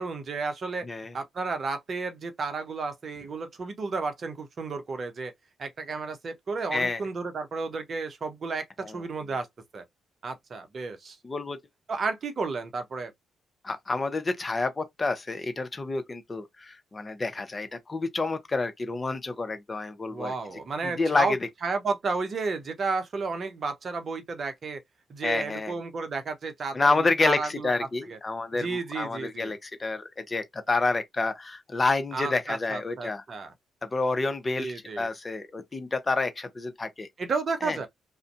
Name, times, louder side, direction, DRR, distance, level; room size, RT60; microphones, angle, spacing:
voice 1, 0.0-0.8 1.1-5.3 5.6-9.5 9.7-9.8 10.2-11.2 11.9-13.1 20.1-21.4 21.6-24.8 25.1-27.7 28.1-28.2 28.6-29.5 32.1-33.5 34.6-35.1 37.2-37.9, right 4 dB, 50° right, 0.7 m, -32 dB
voice 2, 0.8-1.1 6.7-7.0 8.8-9.0 11.2-11.6 13.6-20.3 20.8-21.4 25.2-25.7 26.7-33.2 33.8-37.1 37.6-37.8, left 3 dB, 35° left, 0.7 m, -29 dB
2.5 x 2.1 x 2.4 m
hypercardioid pair, 45°, 0 cm